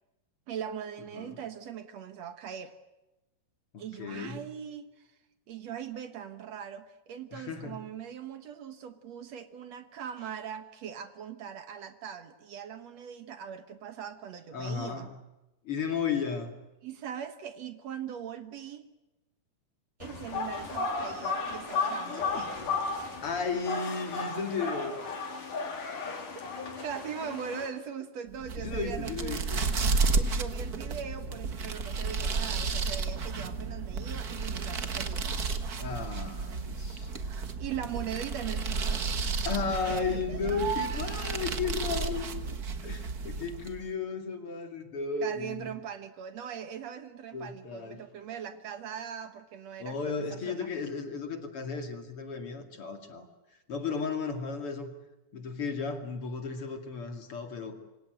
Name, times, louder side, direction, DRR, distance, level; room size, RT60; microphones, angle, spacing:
voice 1, 0.5-2.7 3.8-5.1 5.5-15.1 16.8-18.9 20.0-22.7 26.6-29.4 30.0-35.4 37.6-39.0 39.8-41.2 45.2-50.7, right 8 dB, 65° right, 9 dB, 2.3 m, -40 dB
voice 2, 3.7-4.4 7.3-7.8 14.5-15.2 15.6-16.5 22.0-22.5 23.2-25.0 28.6-29.7 35.8-37.1 39.4-42.6 42.8-45.7 47.3-48.0 49.8-54.9 55.3-57.8, left 5 dB, 45° left, 6 dB, 3.0 m, -34 dB
sound 1, 20.0-27.7, left 4 dB, 90° left, 5.1 m, -34 dB
sound 2, 28.3-43.8, right 4 dB, 40° right, 1.4 m, -32 dB
27.0 x 25.5 x 7.8 m, 1.0 s
omnidirectional pair, 3.5 m